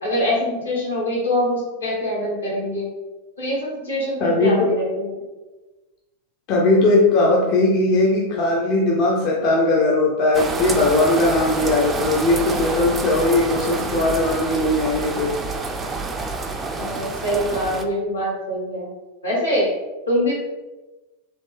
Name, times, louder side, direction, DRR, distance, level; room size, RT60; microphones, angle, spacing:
voice 1, 0.0-2.9 3.4-5.1 16.7-18.9 19.2-19.7 20.1-20.3, equal, 80° left, -5 dB, 1.5 m, -24 dB
voice 2, 4.2-4.7 6.5-15.3, left 2 dB, 40° left, -3 dB, 0.5 m, -19 dB
sound 1, 10.3-17.8, right 3 dB, 15° right, 0.4 m, -27 dB
3.1 x 2.7 x 3.3 m, 1.1 s
figure-of-eight pair, 90°, 0 cm